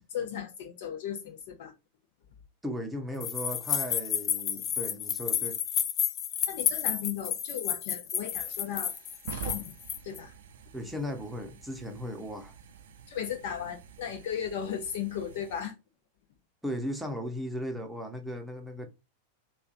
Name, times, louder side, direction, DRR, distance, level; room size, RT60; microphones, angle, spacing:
voice 1, 0.0-1.7 6.5-8.9 9.3-9.7 10.0-10.3 13.1-15.7, left 9 dB, 50° left, 0.8 m, -36 dB
voice 2, 2.6-5.6 10.7-12.5 16.6-18.9, equal, ahead, 0.8 m, -36 dB
sound 1, 3.2-10.2, left 9 dB, 30° left, 0.3 m, -31 dB
sound 2, 8.0-15.6, right 8 dB, 60° right, 0.5 m, -47 dB
3.4 x 2.3 x 2.7 m
figure-of-eight pair, 90°, 0 cm